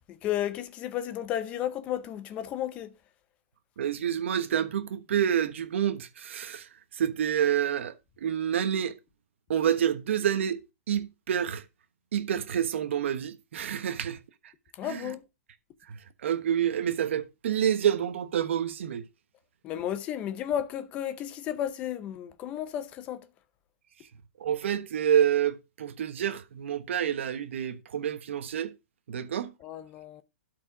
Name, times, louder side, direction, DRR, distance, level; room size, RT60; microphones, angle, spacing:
voice 1, 0.1-2.9 14.7-15.2 19.6-23.3 29.6-30.2, left 11 dB, 15° left, 0.6 m, -33 dB
voice 2, 3.8-9.0 9.5-10.6 10.9-11.6 12.1-14.5 14.8-15.1 15.9-19.1 24.4-28.7 29.1-29.5, right 9 dB, 55° right, 1.2 m, -28 dB
12.5 x 4.9 x 4.7 m
hypercardioid pair, 175°, 8 cm